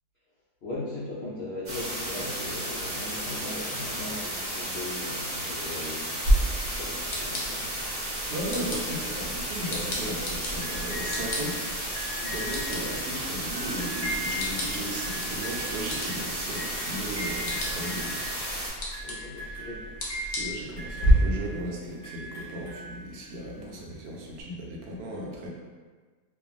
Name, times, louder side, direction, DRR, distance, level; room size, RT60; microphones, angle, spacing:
voice 1, 0.6-7.7 12.2-13.0 19.0-19.9 23.5-23.9, left 2 dB, 75° left, -9 dB, 0.5 m, -39 dB
sound 1, 1.7-18.7, right 1 dB, 45° right, 0.5 m, -34 dB
sound 2, 6.2-21.1, right 1 dB, 60° left, 0.9 m, -33 dB
voice 2, 8.3-11.9 12.3-18.2 20.3-25.5, right 1 dB, 85° right, -2 dB, 1.2 m, -36 dB
sound 3, 10.6-23.4 24.4-24.5, equal, 15° left, 0.8 m, -39 dB
2.8 x 2.5 x 2.4 m, 1.4 s
omnidirectional pair, 1.8 m